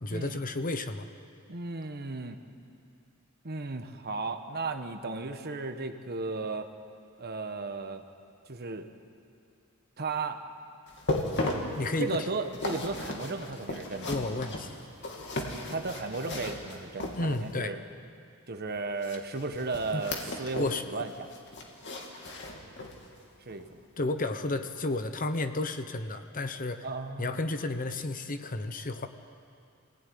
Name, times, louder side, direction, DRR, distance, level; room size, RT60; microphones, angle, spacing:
voice 1, 0.0-1.1 11.7-12.2 14.1-14.8 17.1-17.8 19.9-20.0 20.6-20.8 24.0-26.9 27.2-29.1, left 2 dB, 40° left, 8 dB, 1.1 m, -32 dB
voice 2, 1.5-2.4 3.4-6.7 7.2-8.0 8.5-8.9 10.0-10.4 12.0-14.1 15.7-17.8 18.5-21.3 23.4-23.8 26.8-27.4, right 3 dB, 50° right, 7 dB, 1.4 m, -35 dB
sound 1, 10.9-17.6 19.0-20.8 21.1-23.1 23.5-23.7 24.2-24.3, left 1 dB, 55° left, 2.7 m, -36 dB
26.0 x 17.5 x 9.5 m, 2.5 s
head